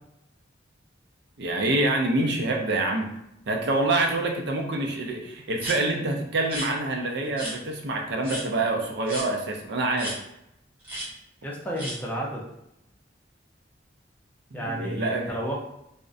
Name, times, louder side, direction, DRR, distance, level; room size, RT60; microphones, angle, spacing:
voice 1, 1.4-3.1 3.5-10.1 14.5-15.3, right 2 dB, 60° right, 1 dB, 0.4 m, -26 dB
sound 1, 5.6-5.8 6.4-6.7 7.4-7.5 8.2-8.4 9.1-9.3 10.0-10.2 10.8-11.1 11.8-12.0, equal, 10° right, 0.8 m, -33 dB
voice 2, 11.4-12.4 14.5-15.6, right 1 dB, 10° left, -3 dB, 0.5 m, -31 dB
2.4 x 2.1 x 2.4 m, 0.81 s
head